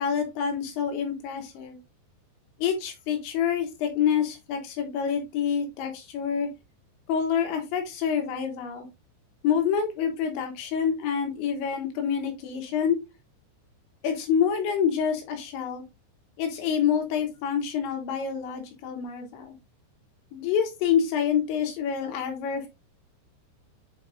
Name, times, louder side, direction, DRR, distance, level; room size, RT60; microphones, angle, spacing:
voice 1, 0.0-1.8 2.6-6.5 7.1-8.9 9.4-13.0 14.0-15.8 16.4-19.6 20.3-22.7, left 7 dB, 80° left, 4 dB, 3.4 m, -27 dB
8.4 x 4.7 x 2.5 m, 0.24 s
omnidirectional pair, 5.4 m